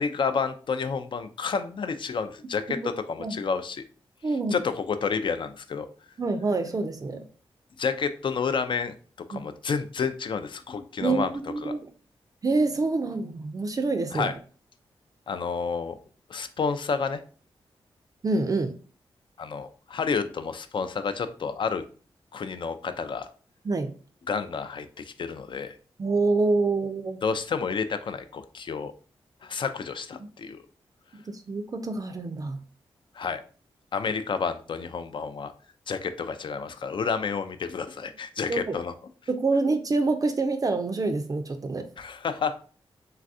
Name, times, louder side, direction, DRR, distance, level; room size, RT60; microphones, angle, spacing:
voice 1, 0.0-3.8 4.5-5.9 7.8-9.0 9.3-11.3 11.6-11.7 14.1-14.3 15.3-16.0 16.3-17.2 19.4-21.8 22.3-23.3 24.3-25.7 27.2-28.9 29.4-30.6 33.2-33.4 33.9-35.5 35.9-38.9 42.0-42.6, left 5 dB, 55° left, 10 dB, 0.3 m, -30 dB
voice 2, 4.2-4.6 6.2-7.2 9.3-9.4 11.0-11.9 12.4-14.3 18.2-18.7 23.6-23.9 26.0-27.2 30.2-30.3 31.3-32.6 38.5-38.7 39.3-41.8, right 3 dB, 35° right, 7 dB, 0.4 m, -26 dB
3.2 x 2.3 x 2.6 m, 0.41 s
cardioid pair, 55°, 10 cm